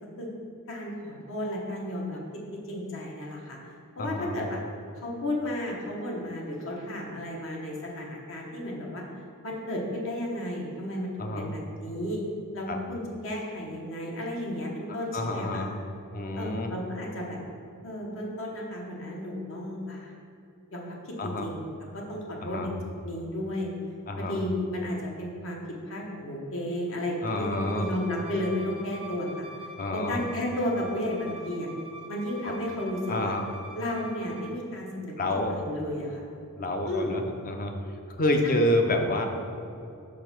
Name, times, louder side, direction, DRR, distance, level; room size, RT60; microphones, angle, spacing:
voice 1, 0.7-2.2 2.7-3.6 4.0-4.6 4.9-9.0 9.4-12.2 12.5-15.7 16.3-17.4 17.8-20.1 20.7-22.7 23.0-23.7 24.2-25.6 25.9-27.5 27.7-29.5 29.9-31.7 32.1-33.3 33.7-35.1 35.5-36.3 36.9-37.2 38.4-38.6, left 1 dB, 60° left, -1 dB, 1.2 m, -33 dB
voice 2, 4.0-4.4 11.2-11.6 12.7-12.8 15.1-15.8 16.1-16.7 21.2-21.5 22.4-22.7 24.1-24.4 27.2-27.9 29.8-30.2 32.4-32.5 33.1-33.4 35.2-35.6 36.6-37.7 38.1-39.3, left 1 dB, 40° left, 4 dB, 0.6 m, -28 dB
Bowed string instrument, 27.3-34.5, right 1 dB, 25° right, 0.4 m, -44 dB
5.2 x 4.5 x 5.9 m, 2.6 s
head